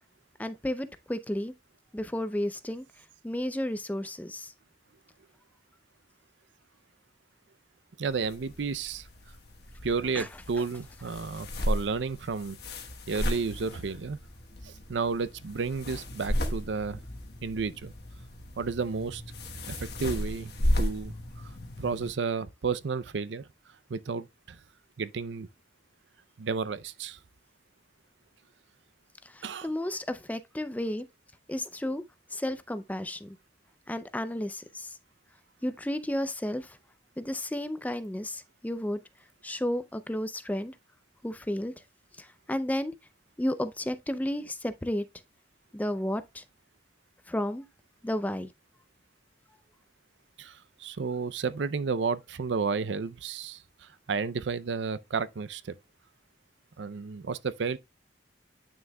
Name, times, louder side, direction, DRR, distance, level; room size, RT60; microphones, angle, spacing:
voice 1, 0.4-1.5 1.9-2.8 3.2-4.5 10.2-10.3 29.3-31.1 31.5-32.0 32.3-33.4 33.9-35.0 35.6-36.8 37.2-39.0 39.4-40.7 41.2-41.7 42.2-42.9 43.4-45.0 45.7-46.4 47.3-47.6 48.0-48.5, left 1 dB, 10° left, 0.4 m, -32 dB
voice 2, 8.0-9.1 9.8-12.6 13.1-14.2 14.6-17.0 17.4-17.9 18.6-19.2 19.8-23.5 23.9-24.6 25.0-25.5 26.4-27.2 29.4-29.7 50.4-55.7 56.8-57.8, right 5 dB, 75° right, 0.5 m, -32 dB
sound 1, 8.1-22.1, left 1 dB, 55° left, 1.2 m, -35 dB
9.3 x 6.2 x 2.3 m
head